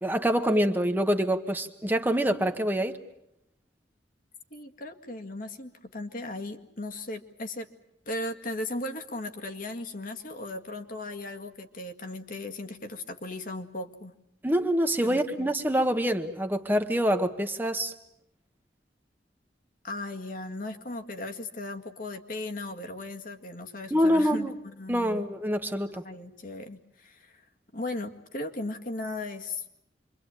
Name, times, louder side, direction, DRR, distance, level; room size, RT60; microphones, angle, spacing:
voice 1, 0.0-3.0 14.4-17.9 23.9-24.5 24.9-26.0, equal, 10° right, 7 dB, 1.2 m, -26 dB
voice 2, 4.5-7.7 8.1-14.1 15.0-15.5 19.8-25.3 26.0-27.4 27.7-29.6, left 2 dB, 50° left, 5 dB, 1.9 m, -37 dB
27.5 x 23.5 x 9.0 m, 0.80 s
head